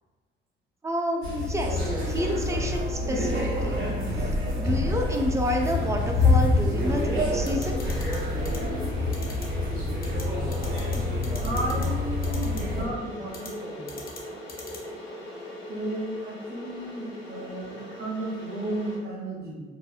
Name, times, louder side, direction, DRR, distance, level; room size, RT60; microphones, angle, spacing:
voice 1, 0.8-1.8 2.1-3.9 4.6-7.8 17.4-17.5, equal, 15° right, 1 dB, 0.3 m, -29 dB
sound 1, 1.2-12.8, left 2 dB, 85° right, 0.9 m, -26 dB
sound 2, 7.5-8.2 8.4-8.6 9.1-9.4 10.0-10.2 10.5-11.0 11.2-11.9 12.2-12.6 13.3-13.5 13.9-14.2 14.5-14.8, left 4 dB, 45° left, 0.6 m, -40 dB
Water / Boiling, 7.7-19.0, left 1 dB, 80° left, 0.9 m, -41 dB
voice 2, 11.4-13.9 15.7-19.6, right 2 dB, 55° right, -4 dB, 0.8 m, -33 dB
2.7 x 2.0 x 2.3 m, 1.4 s
cardioid pair, 90°, 20 cm